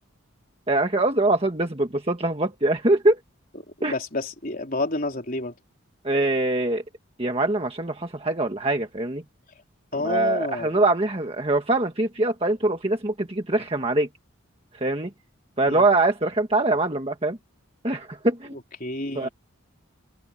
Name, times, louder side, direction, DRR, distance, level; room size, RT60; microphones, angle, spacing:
voice 1, 0.7-3.2 3.8-3.9 6.0-6.8 7.2-9.2 10.0-14.1 14.7-15.1 15.6-17.4 17.8-18.6 19.1-19.3, right 2 dB, 25° right, 1.5 m, -23 dB
voice 2, 3.9-5.5 9.9-10.8 15.7-15.8 18.5-19.3, left 2 dB, 40° left, 3.8 m, -29 dB
head